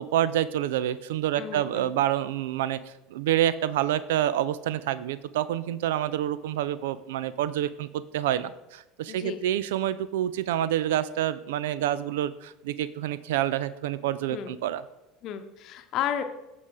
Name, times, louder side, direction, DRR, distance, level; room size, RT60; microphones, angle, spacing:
voice 1, 0.0-2.8 3.1-14.8, right 12 dB, 65° right, 16 dB, 0.4 m, -27 dB
voice 2, 1.4-1.9 9.1-9.4 14.3-14.6 15.2-16.2, left 10 dB, 45° left, 8 dB, 0.9 m, -33 dB
14.5 x 5.1 x 3.5 m, 0.96 s
figure-of-eight pair, 70°, 0 cm